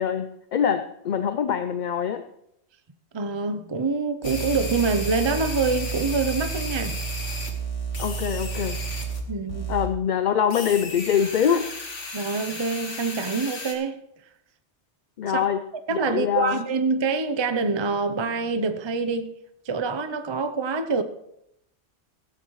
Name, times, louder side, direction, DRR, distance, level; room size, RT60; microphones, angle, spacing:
voice 1, 0.0-2.2 8.0-8.8 9.7-11.7 15.2-15.6 15.9-16.6, left 8 dB, 50° left, 0.6 m, -24 dB
voice 2, 3.1-7.0 9.3-9.7 12.1-14.0 15.3-15.4 15.9-19.3 19.7-21.0, right 4 dB, 30° right, 0.6 m, -26 dB
sound 1, 4.2-9.2 9.5-9.9 10.5-13.7, right 2 dB, 90° left, 2.1 m, -31 dB
15.5 x 13.0 x 3.1 m
omnidirectional pair, 1.2 m